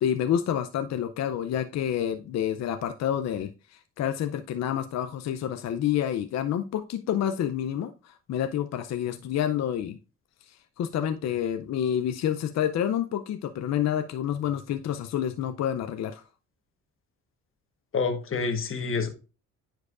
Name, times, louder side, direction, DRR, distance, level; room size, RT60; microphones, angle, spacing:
voice 1, 0.0-10.0 10.5-16.2, left 10 dB, 60° left, 0.6 m, -28 dB
voice 2, 17.9-19.1, left 4 dB, 45° left, 1.3 m, -27 dB
9.6 x 4.6 x 2.5 m
cardioid pair, 90°, 30 cm